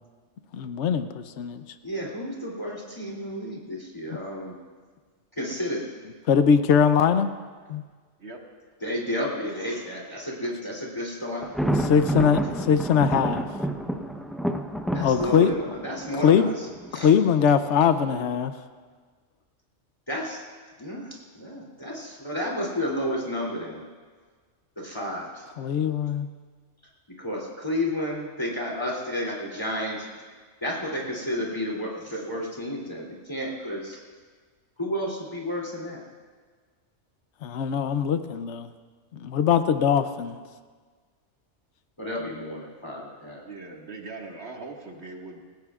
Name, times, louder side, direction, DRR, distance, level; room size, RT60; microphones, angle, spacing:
voice 1, 0.5-1.1 1.4-1.6 6.3-7.3 7.7-7.8 11.8-12.4 12.7-13.5 15.0-15.5 16.2-16.5 16.9-18.5 25.6-26.3 37.4-38.7 39.2-40.4, left 7 dB, 75° left, 10 dB, 1.0 m, -21 dB
voice 2, 1.8-4.6 5.4-5.8 8.8-11.4 14.9-16.7 16.9-17.1 20.1-20.4 20.8-23.8 24.8-25.4 27.2-30.1 30.6-34.0 34.8-36.0 42.0-43.4, left 1 dB, 20° left, -4 dB, 3.0 m, -31 dB
Thunder, 11.4-17.2, right 1 dB, ahead, 0.7 m, -29 dB
voice 3, 43.4-45.4, right 3 dB, 65° right, 0 dB, 2.1 m, -40 dB
28.0 x 16.5 x 2.4 m, 1.5 s
omnidirectional pair, 1.2 m